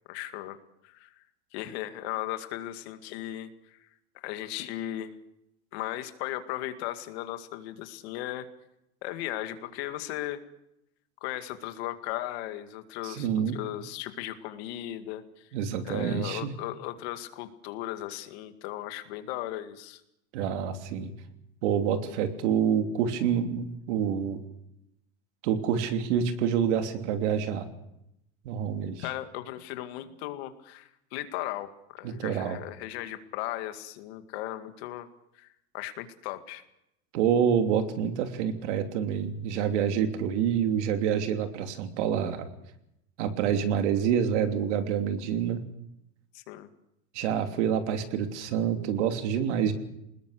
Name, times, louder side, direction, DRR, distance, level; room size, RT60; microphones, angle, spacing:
voice 1, 0.1-0.6 0.8-1.1 1.5-3.8 4.2-5.1 5.7-8.5 9.0-10.4 11.2-15.5 15.8-20.0 29.0-35.1 35.4-35.5 35.7-36.6 46.3-46.7, left 14 dB, 65° left, 9 dB, 2.2 m, -37 dB
voice 2, 13.0-13.6 15.5-16.5 20.3-21.1 21.6-24.4 25.4-27.7 28.4-29.0 32.0-32.6 37.1-42.5 43.2-45.6 47.1-49.7, right 8 dB, 85° right, 7 dB, 3.1 m, -27 dB
25.5 x 20.5 x 6.7 m, 0.81 s
cardioid pair, 175°, 34 cm